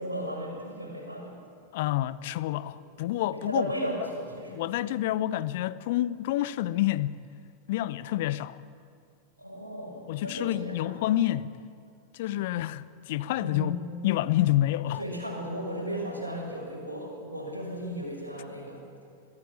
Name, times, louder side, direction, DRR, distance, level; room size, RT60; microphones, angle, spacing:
voice 1, 0.0-1.4 3.3-5.1 9.4-11.1 12.3-12.5 13.4-13.8 14.9-18.9, equal, 85° right, 5.9 m, -35 dB
voice 2, 1.7-3.7 4.5-7.2 7.7-8.6 10.1-11.5 12.1-13.8 14.0-15.0, left 14 dB, 50° left, 0.7 m, -28 dB
22.5 x 15.0 x 8.7 m
figure-of-eight pair, 90°, 0 cm